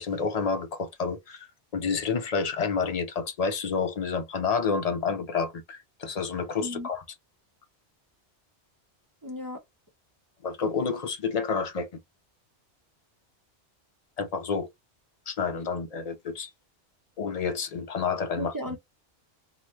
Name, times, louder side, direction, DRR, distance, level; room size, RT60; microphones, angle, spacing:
voice 1, 0.0-1.5 1.7-7.0 10.4-12.0 14.2-14.7 15.3-16.5 17.2-18.5, left 5 dB, 50° left, 0.4 m, -29 dB
voice 2, 6.6-6.9 9.2-9.6 18.4-18.8, equal, 25° right, 0.5 m, -35 dB
2.9 x 2.1 x 3.0 m
omnidirectional pair, 1.2 m